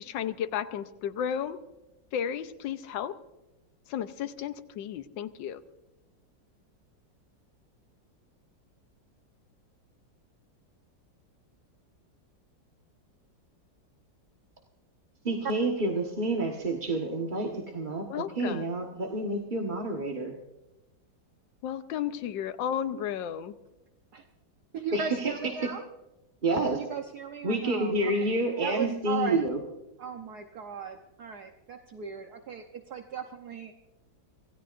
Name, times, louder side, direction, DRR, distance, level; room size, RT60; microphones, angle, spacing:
voice 1, 0.0-1.6 2.1-3.2 3.9-5.6 18.1-18.6 21.6-23.5, left 9 dB, 85° left, 10 dB, 1.5 m, -33 dB
voice 2, 15.2-20.3 24.9-25.3 26.4-26.8 27.4-29.6, right 2 dB, 30° right, 0 dB, 1.4 m, -29 dB
voice 3, 24.7-25.8 26.7-28.3 28.6-29.4 30.0-33.7, right 7 dB, 60° right, 4 dB, 1.4 m, -37 dB
26.0 x 17.5 x 2.5 m, 0.99 s
omnidirectional pair, 2.0 m